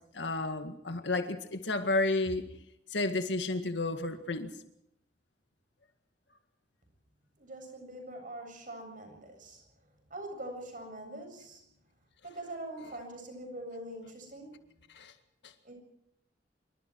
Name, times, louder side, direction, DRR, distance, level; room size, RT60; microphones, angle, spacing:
voice 1, 0.1-2.5 2.9-4.5 14.9-15.1, left 2 dB, 80° left, 7 dB, 2.0 m, -31 dB
voice 2, 7.4-9.6 10.1-11.6 12.2-14.7 15.6-15.7, right 1 dB, 50° right, 4 dB, 7.8 m, -43 dB
26.0 x 24.0 x 4.8 m, 0.76 s
head